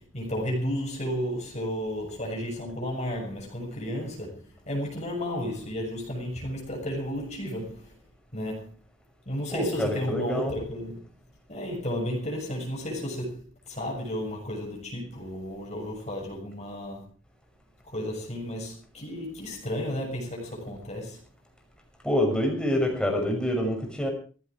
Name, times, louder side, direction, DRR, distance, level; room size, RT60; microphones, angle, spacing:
voice 1, 0.0-7.9 8.3-8.7 9.2-11.0 11.5-17.1 17.9-21.2, equal, 35° left, 6.7 m, -33 dB
voice 2, 9.5-10.6 22.0-24.1, left 1 dB, 5° left, 6.1 m, -26 dB
18.5 x 15.5 x 4.8 m
head